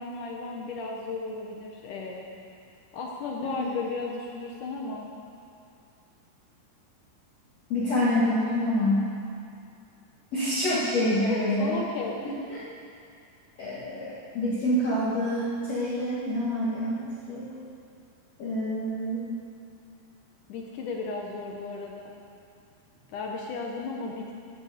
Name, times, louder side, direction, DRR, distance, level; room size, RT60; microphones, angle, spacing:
voice 1, 0.0-2.3 2.9-5.1 11.2-12.2 20.5-22.1 23.1-24.3, left 3 dB, 70° left, 0 dB, 2.0 m, -34 dB
voice 2, 7.7-9.1 10.3-11.8 12.5-12.6 13.6-17.5 18.4-19.3, left 1 dB, 50° left, -8 dB, 2.3 m, -27 dB
15.5 x 12.0 x 5.0 m, 2.5 s
omnidirectional pair, 4.8 m